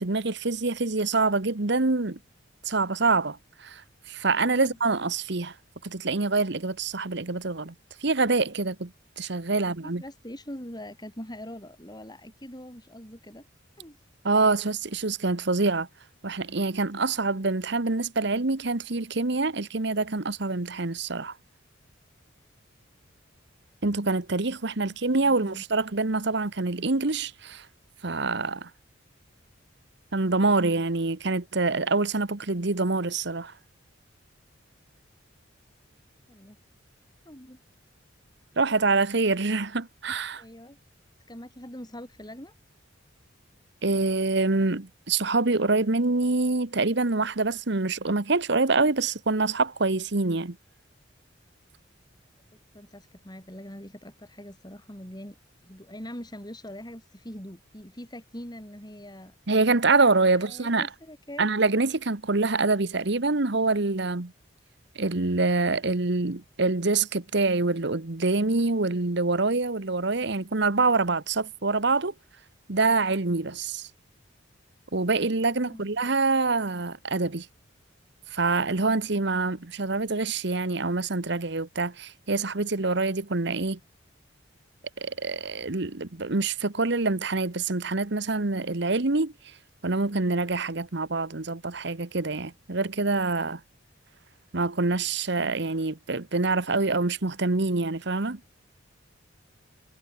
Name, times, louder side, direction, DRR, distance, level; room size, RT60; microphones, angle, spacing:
voice 1, 0.0-2.2 2.6-3.8 4.1-5.5 5.8-7.7 8.0-10.0 14.2-15.9 16.2-21.3 23.8-27.7 28.0-28.7 30.1-33.5 38.6-40.4 43.8-50.6 59.5-60.9 61.4-64.3 64.9-72.1 72.7-73.9 74.9-77.5 78.3-83.8 85.0-89.3 89.8-93.6 94.5-98.4, right 3 dB, 60° right, 1.3 m, -25 dB
voice 2, 9.5-13.5 13.8-14.0 24.8-25.6 36.3-36.6 37.2-37.6 40.3-40.8 41.3-42.5 52.5-55.4 55.6-59.4 60.3-61.4 75.5-75.9, equal, 20° left, 6.7 m, -43 dB
head